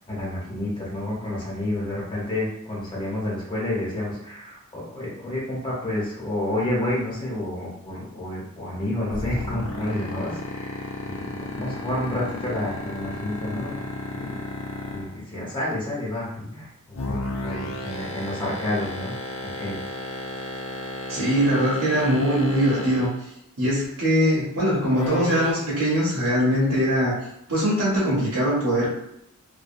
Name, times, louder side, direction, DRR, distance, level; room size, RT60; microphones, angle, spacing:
voice 1, 0.1-13.8 14.1-14.4 14.9-19.1 19.4-19.8, left 1 dB, 20° left, -6 dB, 1.0 m, -30 dB
sound 1, 9.1-15.2 16.9-23.2 24.9-25.5, left 2 dB, 65° left, 0.5 m, -32 dB
voice 2, 21.1-23.3 23.6-27.1 27.5-28.9, equal, 90° right, -7 dB, 0.8 m, -22 dB
2.6 x 2.2 x 2.6 m, 0.80 s
head